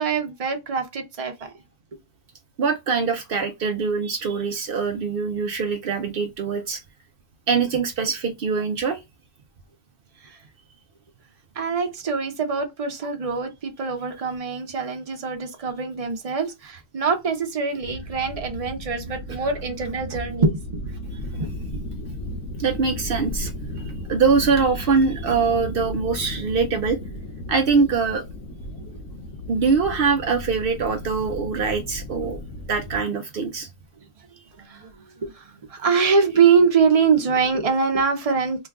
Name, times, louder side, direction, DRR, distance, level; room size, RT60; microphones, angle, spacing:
voice 1, 0.0-1.5 10.2-10.4 11.6-20.6 21.4-21.5 34.6-38.7, right 5 dB, 40° right, 0.5 m, -23 dB
voice 2, 2.6-6.8 7.5-9.0 21.3-21.5 22.6-23.5 23.8-27.0 27.5-28.2 29.5-32.4 32.7-33.7, right 5 dB, 90° right, 0.4 m, -23 dB
sound 1, 17.8-33.0, left 1 dB, 55° left, 0.9 m, -35 dB
3.0 x 2.2 x 3.5 m
omnidirectional pair, 1.7 m